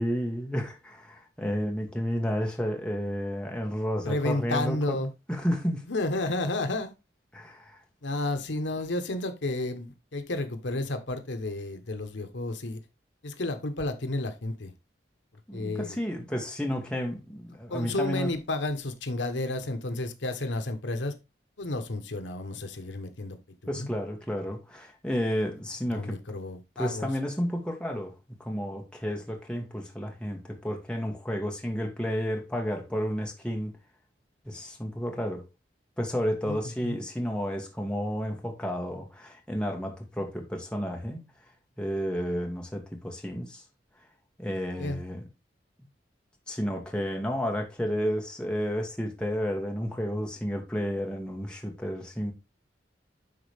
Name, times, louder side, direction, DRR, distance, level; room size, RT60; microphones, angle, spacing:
voice 1, 0.0-5.0 5.3-5.8 7.3-7.8 15.5-18.3 23.7-26.2 26.8-33.8 34.4-35.5 36.0-41.2 41.8-43.6 44.4-45.2 46.5-52.3, equal, 5° left, 1.4 m, -31 dB
voice 2, 4.0-5.1 5.9-6.9 8.0-12.8 13.2-14.7 15.5-16.0 17.7-21.1 21.6-23.4 23.7-23.9 25.9-27.1 36.5-36.6 36.8-37.0 44.8-45.0, left 2 dB, 80° left, 1.1 m, -31 dB
10.5 x 4.1 x 3.4 m
head